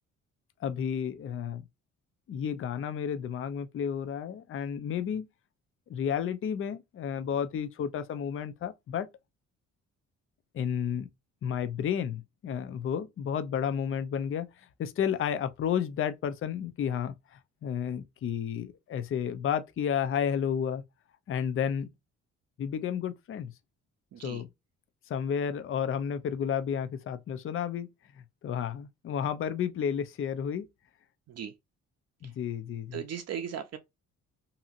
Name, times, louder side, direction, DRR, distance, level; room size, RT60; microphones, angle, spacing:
voice 1, 0.6-1.6 2.3-5.3 5.9-9.1 10.5-11.1 11.4-14.5 14.8-20.8 21.3-21.9 22.6-23.5 24.2-24.5 25.1-27.9 28.4-30.7 32.2-33.0, left 8 dB, 45° left, 0.5 m, -31 dB
voice 2, 24.1-24.4 31.3-31.5 32.9-33.8, right 8 dB, 55° right, 0.5 m, -37 dB
2.8 x 2.6 x 2.4 m
cardioid pair, 90°, 30 cm